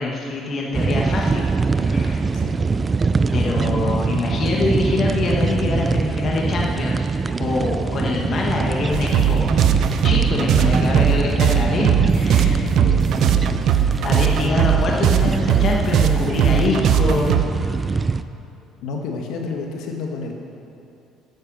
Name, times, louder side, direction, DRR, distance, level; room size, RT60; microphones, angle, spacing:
voice 1, 0.0-1.5 1.7-2.3 3.3-7.1 7.4-9.5 10.0-12.7 14.0-17.8, left 3 dB, 35° left, -1 dB, 1.4 m, -24 dB
sound 1, 0.7-18.2, right 4 dB, 20° right, 0.4 m, -23 dB
sound 2, 8.9-17.5, right 8 dB, 55° right, 0.7 m, -19 dB
voice 2, 12.6-13.1 18.8-20.3, left 4 dB, 70° left, 1 dB, 1.8 m, -30 dB
11.5 x 9.5 x 7.4 m, 2.7 s
cardioid pair, 160°, 0 cm